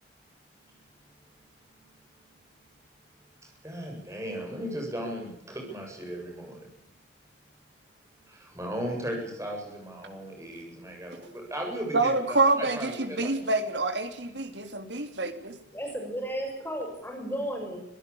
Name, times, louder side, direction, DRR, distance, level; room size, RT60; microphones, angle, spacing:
voice 1, 3.6-6.7 8.3-13.5, equal, 15° right, 1 dB, 8.0 m, -36 dB
voice 2, 11.9-15.5, right 2 dB, 75° right, 7 dB, 3.4 m, -27 dB
voice 3, 15.7-17.8, equal, 10° left, 2 dB, 6.2 m, -33 dB
25.0 x 18.0 x 8.7 m, 0.77 s
head